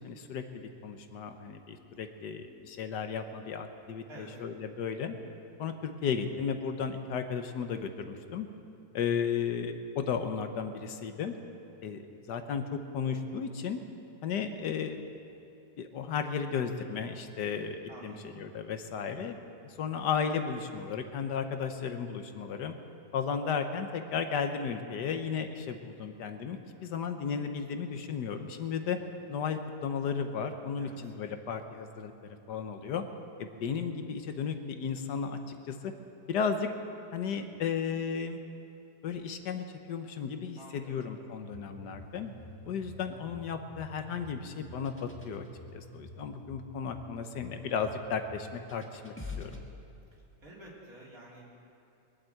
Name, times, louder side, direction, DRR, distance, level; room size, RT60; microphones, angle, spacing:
voice 1, 0.0-5.2 5.6-8.5 8.9-11.3 11.8-13.8 14.2-15.0 15.8-19.4 19.6-22.7 23.1-29.0 29.3-33.0 33.4-35.9 36.3-36.7 37.1-38.4 39.0-42.3 42.7-45.5 45.7-49.6, left 6 dB, 75° left, 7 dB, 1.5 m, -34 dB
voice 2, 4.1-4.4 17.9-18.4 30.8-31.1 40.6-41.0 50.1-51.4, right 1 dB, 55° right, -5 dB, 3.6 m, -50 dB
sound 1, 41.5-49.6, left 2 dB, 10° left, 1.4 m, -47 dB
22.0 x 8.4 x 7.8 m, 2.7 s
omnidirectional pair, 1.8 m